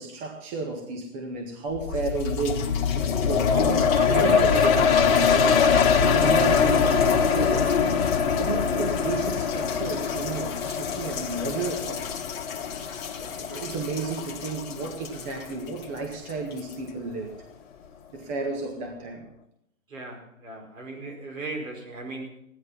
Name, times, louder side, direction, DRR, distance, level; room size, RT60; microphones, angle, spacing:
voice 1, 0.0-5.6 6.0-7.9 8.4-12.1 13.2-17.4 18.1-19.3, right 4 dB, 25° right, 2 dB, 1.9 m, -32 dB
sound 1, 1.4-1.5 1.9-17.6 18.2-18.3, left 8 dB, 20° left, 1.4 m, -36 dB
sound 2, 1.7-15.0 15.5-15.6, left 6 dB, 45° left, 2.0 m, -23 dB
voice 2, 19.9-22.4, right 2 dB, 75° right, 3 dB, 5.3 m, -37 dB
16.5 x 11.0 x 5.8 m, 0.73 s
hypercardioid pair, 155°, 41 cm